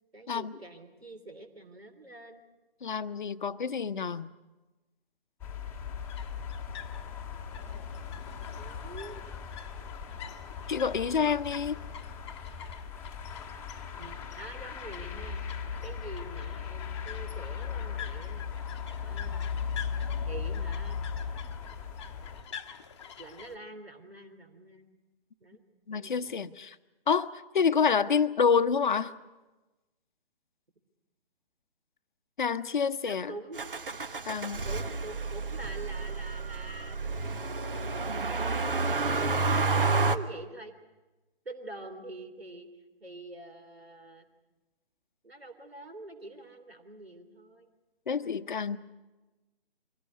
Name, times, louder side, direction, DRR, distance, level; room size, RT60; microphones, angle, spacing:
voice 1, 0.1-2.4 8.6-9.2 14.0-18.5 18.9-19.6 20.2-21.0 23.2-24.9 25.4-25.6 25.9-26.4 33.0-33.6 34.6-40.7 41.4-42.7 43.0-44.3 45.2-47.7, right 2 dB, 75° right, 8 dB, 3.3 m, -46 dB
voice 2, 2.8-4.3 10.7-11.8 25.9-26.8 27.1-27.3 27.5-29.1 32.4-33.3 34.3-34.6 48.1-48.8, left 6 dB, 50° left, 12 dB, 0.9 m, -28 dB
sound 1, 5.4-22.4, left 6 dB, 5° left, 1.2 m, -38 dB
sound 2, 5.9-23.6, left 8 dB, 30° left, 1.0 m, -48 dB
Motor vehicle (road), 33.6-40.2, right 3 dB, 60° right, 1.2 m, -30 dB
23.5 x 17.0 x 9.5 m, 1.1 s
figure-of-eight pair, 140°, 30 cm